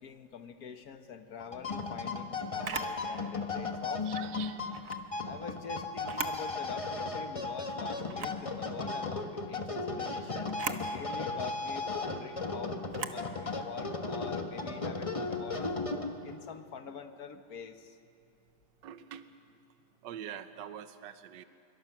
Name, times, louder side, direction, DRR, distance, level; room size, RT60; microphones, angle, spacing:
voice 1, 0.0-4.1 5.2-15.7 16.2-18.0, left 6 dB, 60° left, 8 dB, 1.6 m, -45 dB
sound 1, 1.4-16.4, left 3 dB, 20° left, 1.1 m, -36 dB
Camera, 2.6-3.0 4.7-5.0 6.0-6.4 6.9-7.0 8.1-8.4 10.5-10.9 12.9-13.2, right 7 dB, 55° right, 1.3 m, -38 dB
voice 2, 4.0-4.6 12.8-12.9 18.8-19.3 20.0-21.4, right 9 dB, 80° right, 11 dB, 1.5 m, -44 dB
26.5 x 23.5 x 6.0 m, 2.5 s
omnidirectional pair, 1.9 m